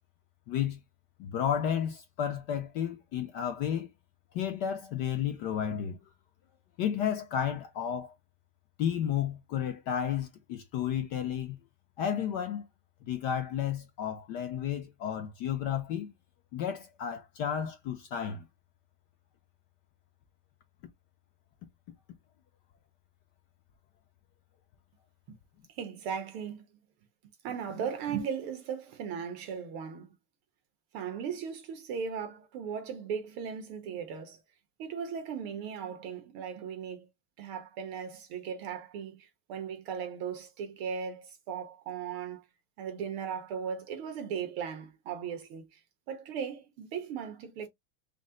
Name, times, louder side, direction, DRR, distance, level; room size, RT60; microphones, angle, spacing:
voice 1, 0.5-0.8 1.2-3.9 4.3-6.0 6.8-8.1 8.8-11.6 12.0-12.6 13.0-16.1 16.5-18.5, left 9 dB, 70° left, 1.0 m, -32 dB
voice 2, 25.8-26.7 27.4-30.2 30.9-34.4 34.8-37.1 37.4-42.4 42.8-45.8 46.1-47.7, right 7 dB, 75° right, 1.9 m, -37 dB
5.2 x 2.1 x 3.7 m
omnidirectional pair, 2.4 m